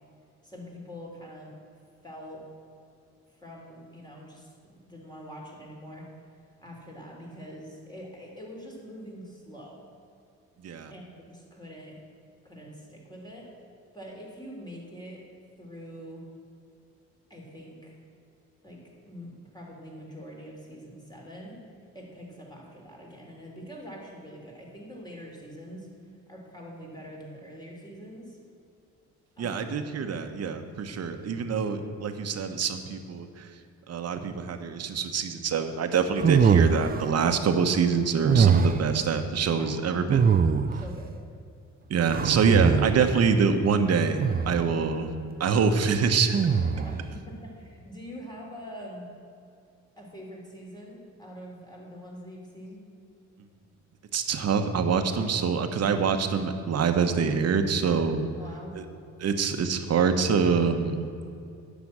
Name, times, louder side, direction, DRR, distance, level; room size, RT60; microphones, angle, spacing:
voice 1, 0.4-1.5 2.0-2.5 3.4-6.1 6.6-9.9 10.9-12.0 12.4-13.5 13.9-15.3 15.6-16.3 17.3-18.0 18.6-21.6 21.9-25.9 26.3-28.4 29.4-29.7 39.6-39.8 40.7-41.2 42.0-42.2 42.5-42.7 46.7-49.1 50.0-52.8 58.4-58.8, equal, 15° left, -2 dB, 3.3 m, -44 dB
voice 2, 29.4-33.5 33.9-40.3 41.9-45.1 45.4-46.4 54.1-58.2 58.7-58.8 59.2-61.1, right 5 dB, 55° right, 7 dB, 1.1 m, -25 dB
sound 1, 36.2-37.1 38.2-38.9 40.1-40.9 42.1-43.1 44.2-44.7 46.3-47.0, right 6 dB, 30° right, 0.5 m, -22 dB
10.0 x 6.2 x 8.7 m, 2.5 s
cardioid pair, 90°, 30 cm